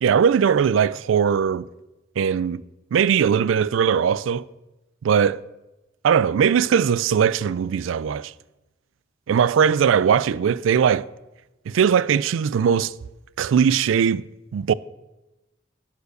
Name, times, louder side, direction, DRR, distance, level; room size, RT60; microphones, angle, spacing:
voice 1, 0.0-1.7 2.2-2.6 2.9-4.5 5.0-5.4 6.0-8.3 9.3-11.0 11.7-12.9 13.4-14.2 14.5-14.7, right 7 dB, 90° right, 0.3 m, -19 dB
11.0 x 4.8 x 6.5 m
head